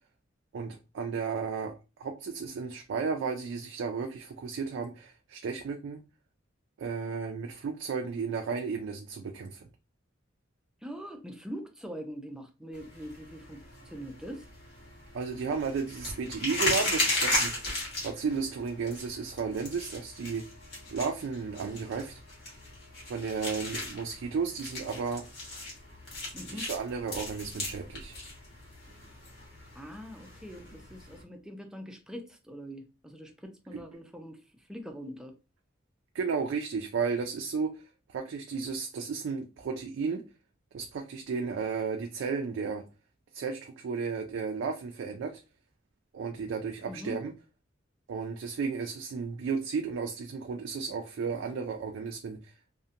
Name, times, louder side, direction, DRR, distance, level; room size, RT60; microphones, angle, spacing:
voice 1, 0.5-1.7 2.0-6.0 6.8-9.7 15.1-17.8 18.0-20.4 20.9-22.2 23.1-25.2 26.5-28.2 33.7-33.8 36.1-37.7 38.1-40.2 40.7-42.8 43.3-45.4 46.1-47.3 48.1-52.5, right 5 dB, 75° right, 0.3 m, -33 dB
voice 2, 10.8-14.5 26.3-26.7 29.7-35.3 46.8-47.2, equal, 5° right, 0.4 m, -43 dB
sound 1, 12.7-31.2, left 2 dB, 60° left, 1.2 m, -36 dB
2.7 x 2.1 x 2.4 m
head